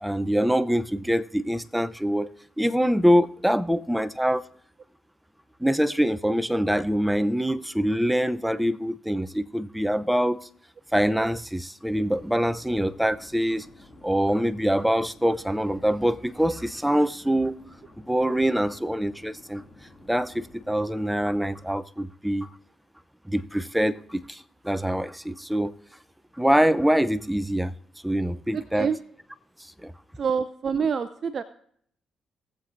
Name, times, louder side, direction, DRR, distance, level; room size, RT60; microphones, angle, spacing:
voice 1, 0.0-2.3 2.6-4.4 5.6-10.5 10.9-13.7 14.0-17.6 18.0-19.6 20.1-22.5 23.3-25.7 26.4-27.7 28.0-28.9 29.8-29.9, equal, 5° right, 0.6 m, -24 dB
sound 1, 11.9-21.6, left 2 dB, 20° left, 2.5 m, -52 dB
voice 2, 28.5-29.0 30.2-31.4, right 6 dB, 55° right, 0.5 m, -26 dB
19.0 x 7.5 x 2.6 m
supercardioid pair, 55°, 0 cm